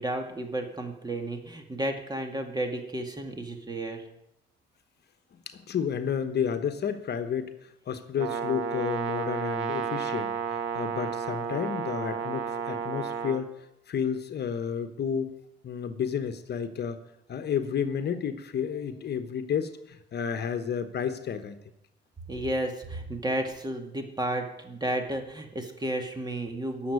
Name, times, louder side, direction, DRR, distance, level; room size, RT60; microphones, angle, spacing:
voice 1, 0.0-4.0 22.3-26.9, right 1 dB, 20° right, 5 dB, 2.2 m, -32 dB
voice 2, 5.5-7.5 7.9-13.5 13.9-15.3 15.6-17.0 17.3-21.5, left 7 dB, 55° left, 9 dB, 1.1 m, -31 dB
Brass instrument, 8.2-13.4, right 6 dB, 75° right, 1.6 m, -32 dB
11.0 x 7.3 x 9.6 m, 0.84 s
cardioid pair, 90°, 20 cm